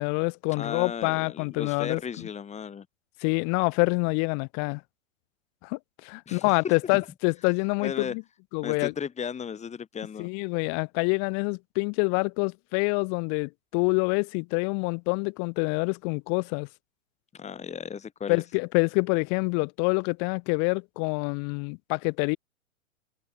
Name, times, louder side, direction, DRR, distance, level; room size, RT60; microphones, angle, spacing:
voice 1, 0.0-2.3 3.2-4.8 5.6-8.2 8.5-8.9 10.2-16.7 18.3-22.4, left 40 dB or more, 45° left, 4.7 m, -26 dB
voice 2, 0.6-2.9 6.3-7.0 7.8-8.1 8.6-10.3 17.3-18.4, left 7 dB, 15° left, 4.8 m, -35 dB
hypercardioid pair, 120°, 40 cm